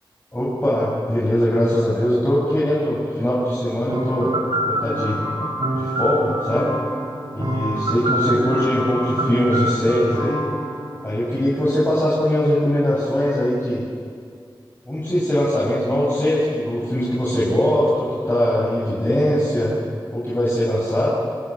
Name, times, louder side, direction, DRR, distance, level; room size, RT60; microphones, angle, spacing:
voice 1, 0.3-4.3 4.6-5.2 5.8-6.7 7.3-10.4 11.0-13.8 14.9-19.7 20.1-21.1, equal, 25° left, -7 dB, 7.6 m, -21 dB
sound 1, 3.9-11.7, right 1 dB, 80° right, 5.8 m, -26 dB
26.5 x 19.0 x 9.1 m, 2.1 s
wide cardioid pair, 55°, 9 cm